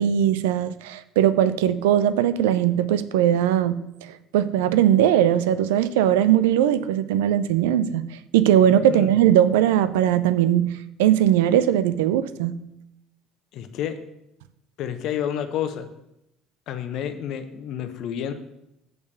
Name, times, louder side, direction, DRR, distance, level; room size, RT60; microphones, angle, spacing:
voice 1, 0.0-8.0 8.3-10.7 11.0-12.6, right 11 dB, 80° right, 14 dB, 0.4 m, -20 dB
voice 2, 13.5-14.0 14.8-15.9 16.7-18.3, left 9 dB, 60° left, 9 dB, 0.8 m, -30 dB
6.8 x 5.4 x 6.7 m, 0.84 s
hypercardioid pair, 60°, 0 cm